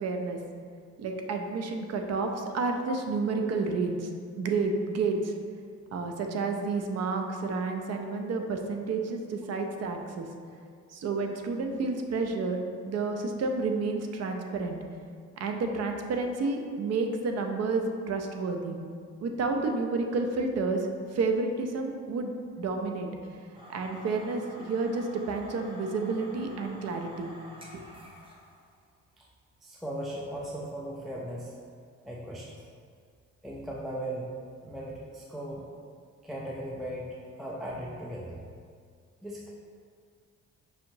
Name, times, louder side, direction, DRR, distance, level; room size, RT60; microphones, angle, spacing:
voice 1, 0.0-0.4 1.0-4.1 4.4-5.3 5.9-10.3 10.9-14.8 15.4-18.8 19.2-23.1 23.7-27.3 27.7-27.8, right 3 dB, 55° right, 4 dB, 0.5 m, -30 dB
sound 1, 23.5-28.7, left 1 dB, 15° right, 0.8 m, -49 dB
voice 2, 29.6-31.6 32.1-32.6 33.4-34.3 34.6-35.7 36.2-38.3 39.2-39.5, right 1 dB, ahead, -4 dB, 0.4 m, -37 dB
5.6 x 2.8 x 2.6 m, 2.1 s
cardioid pair, 90°, 30 cm